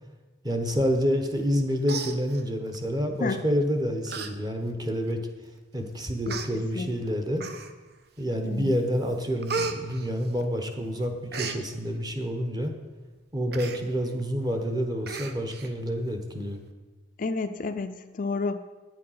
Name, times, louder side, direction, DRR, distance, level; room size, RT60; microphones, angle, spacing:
voice 1, 0.4-5.2 5.7-7.4 8.2-12.7 13.3-16.6, equal, 20° right, 5 dB, 1.0 m, -28 dB
Human voice, 1.4-1.6 1.8-2.8 3.5-3.7 4.1-4.3 4.7-4.8 5.6-5.7 6.3-6.5 7.4-7.9 8.4-8.8 9.0-10.7 11.0-11.6 13.5-13.8 14.2-14.3 14.6-14.7 15.1-15.7 16.1-16.2, right 5 dB, 55° right, 0.7 m, -34 dB
voice 2, 8.4-8.7 17.2-18.6, left 3 dB, 45° left, 8 dB, 0.4 m, -30 dB
9.6 x 7.6 x 5.6 m, 1.3 s
head